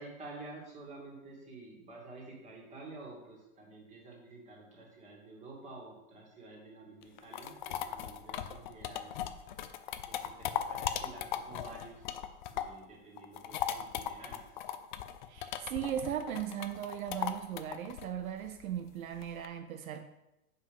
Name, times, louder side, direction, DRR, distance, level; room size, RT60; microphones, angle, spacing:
voice 1, 0.0-9.3 9.7-9.8 10.0-12.1 12.4-14.5, right 2 dB, 15° right, 2.3 m, -50 dB
sound 1, 7.0-12.9 13.2-19.5, left 10 dB, 35° left, 0.4 m, -38 dB
voice 2, 15.3-20.0, right 10 dB, 70° right, 0.7 m, -38 dB
7.6 x 5.5 x 5.4 m
hypercardioid pair, 145°, 43 cm